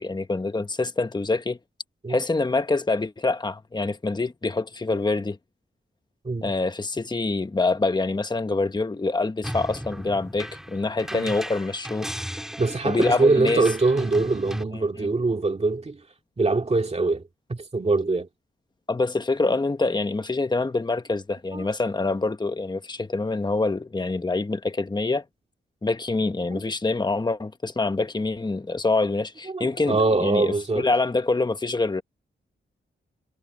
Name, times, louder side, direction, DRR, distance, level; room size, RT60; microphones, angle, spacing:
voice 1, 0.0-1.6 2.1-5.4 6.4-12.1 12.8-13.7 14.7-15.1 18.9-25.2 25.8-32.0, left 3 dB, 20° left, 1.1 m, -25 dB
sound 1, 9.4-14.6, equal, ahead, 2.7 m, -36 dB
voice 2, 12.6-16.0 16.4-17.2 17.5-18.3 21.5-21.7 26.5-26.6 29.5-30.9, right 3 dB, 30° right, 2.3 m, -23 dB
wide cardioid pair, 95°, 21 cm